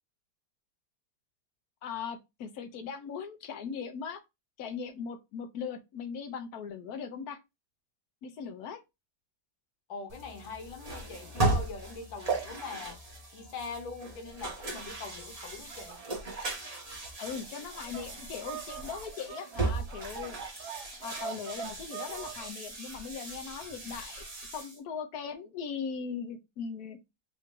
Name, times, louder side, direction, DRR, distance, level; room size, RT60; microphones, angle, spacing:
voice 1, 1.8-4.2 4.6-7.4 8.2-8.8 17.2-20.4 21.0-24.2 24.5-27.0, left 6 dB, 65° left, 1.0 m, -39 dB
voice 2, 9.9-13.0 13.3-16.0, left 4 dB, 85° left, 1.7 m, -42 dB
sound 1, 10.1-24.8, right 2 dB, 25° right, 1.1 m, -37 dB
sound 2, 15.7-22.5, right 8 dB, 90° right, 1.4 m, -44 dB
3.8 x 2.6 x 3.6 m
omnidirectional pair, 2.1 m